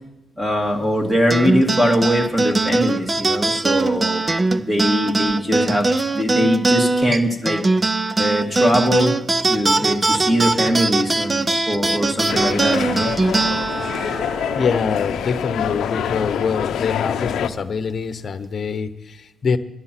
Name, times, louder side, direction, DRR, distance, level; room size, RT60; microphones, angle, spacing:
voice 1, 0.4-4.2 4.6-7.6 8.2-9.1 9.5-13.1, equal, 10° right, 3 dB, 2.0 m, -21 dB
sound 1, 1.3-16.0, right 3 dB, 25° right, 0.5 m, -21 dB
sound 2, 12.3-17.5, left 8 dB, 70° left, 0.7 m, -26 dB
voice 2, 14.5-19.6, left 5 dB, 45° left, 11 dB, 1.0 m, -24 dB
13.0 x 11.0 x 6.0 m, 0.94 s
cardioid pair, 90°, 0 cm